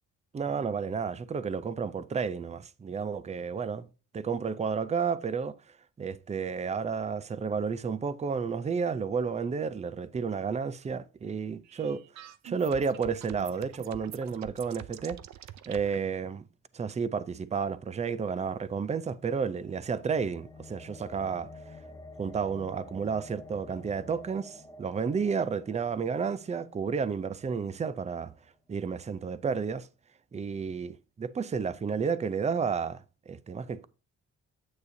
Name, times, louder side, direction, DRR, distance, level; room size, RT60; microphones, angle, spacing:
voice 1, 0.3-3.9 4.1-5.6 6.0-12.0 12.4-15.2 15.7-16.5 16.7-21.5 22.2-28.3 28.7-29.9 30.3-33.9, right 6 dB, 20° right, 0.5 m, -31 dB
sound 1, 11.6-16.0, right 12 dB, 65° right, 0.6 m, -46 dB
sound 2, 18.7-28.4, left 2 dB, 10° left, 1.4 m, -50 dB
9.6 x 8.0 x 2.7 m
cardioid pair, 90°, 30 cm